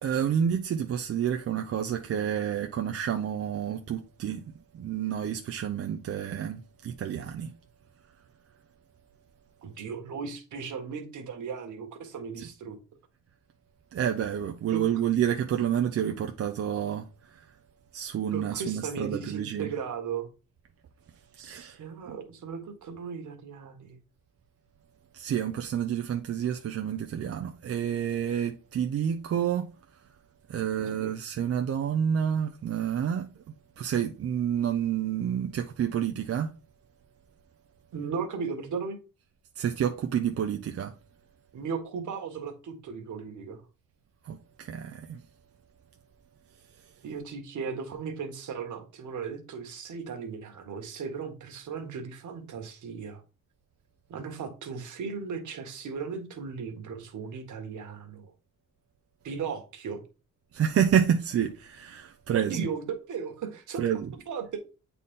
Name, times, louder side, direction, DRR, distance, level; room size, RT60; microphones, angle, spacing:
voice 1, 0.0-4.4 4.8-6.6 6.8-7.5 13.9-17.0 17.9-19.7 21.5-21.7 25.2-29.7 30.5-33.3 33.8-36.5 39.6-40.9 44.3-44.4 44.7-44.9 60.5-62.6 63.8-64.0, right 9 dB, 45° right, 0.6 m, -29 dB
voice 2, 9.6-12.8 14.7-15.0 18.3-20.3 21.4-24.0 30.8-31.2 37.9-39.0 41.5-43.6 47.0-53.2 54.1-58.3 59.2-60.0 62.3-64.6, right 6 dB, 60° right, 1.6 m, -36 dB
8.2 x 4.2 x 3.7 m
cardioid pair, 110°, 34 cm